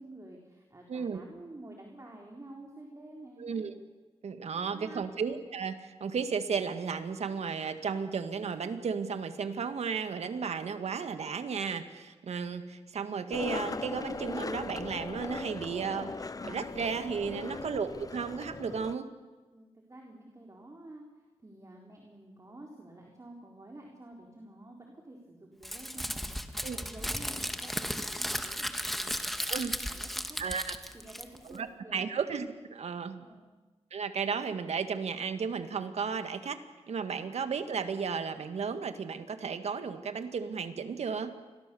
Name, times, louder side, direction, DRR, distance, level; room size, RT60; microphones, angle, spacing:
voice 1, 0.0-3.7 4.5-5.1 17.2-17.7 19.5-21.0 21.4-29.5 29.9-30.4 30.8-32.2 33.1-33.5, right 1 dB, 30° right, 0 dB, 4.1 m, -50 dB
voice 2, 0.9-1.2 3.4-3.8 4.2-19.1 26.6-26.8 29.5-29.7 30.4-30.7 31.5-31.7 31.9-33.2 33.9-36.6 36.9-41.4, right 6 dB, 75° right, 9 dB, 1.8 m, -34 dB
Skateboard, 13.3-19.0, left 3 dB, 35° left, 0.8 m, -39 dB
Crumpling crinkling, 25.6-31.6, equal, ahead, 1.8 m, -35 dB
29.0 x 22.5 x 7.1 m, 1.3 s
cardioid pair, 70°, 11 cm